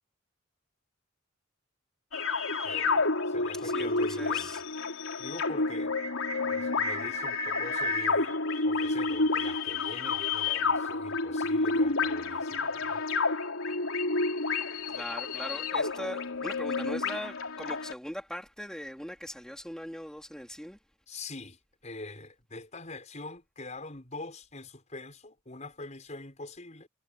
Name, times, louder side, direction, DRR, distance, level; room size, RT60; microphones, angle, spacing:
sound 1, 2.1-17.9, left 3 dB, 85° left, 3.9 m, -30 dB
voice 1, 2.6-4.6 5.2-5.9 6.4-13.1 21.1-26.9, left 2 dB, 35° left, 6.0 m, -43 dB
voice 2, 3.5-4.6 14.9-20.8, equal, 5° left, 3.0 m, -40 dB
head